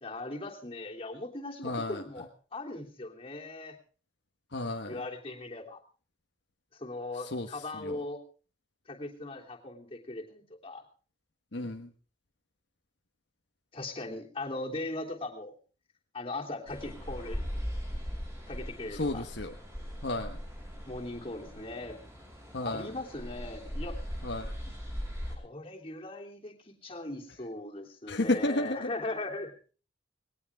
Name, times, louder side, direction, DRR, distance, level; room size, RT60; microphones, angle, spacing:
voice 1, 0.0-3.7 4.9-5.8 6.7-8.2 8.9-10.8 13.7-15.5 16.1-17.4 18.5-19.3 20.8-22.0 22.6-24.0 25.3-29.5, left 2 dB, 30° left, 0 dB, 3.3 m, -39 dB
voice 2, 1.6-2.0 4.5-5.0 7.3-7.5 7.7-8.0 11.5-11.9 18.9-19.5 20.0-20.4 22.5-22.9 24.2-24.5 28.1-28.9, left 2 dB, 60° left, 3 dB, 1.3 m, -32 dB
sound 1, 16.7-25.4, equal, 15° right, 7.1 m, -39 dB
20.0 x 18.5 x 3.6 m, 0.38 s
head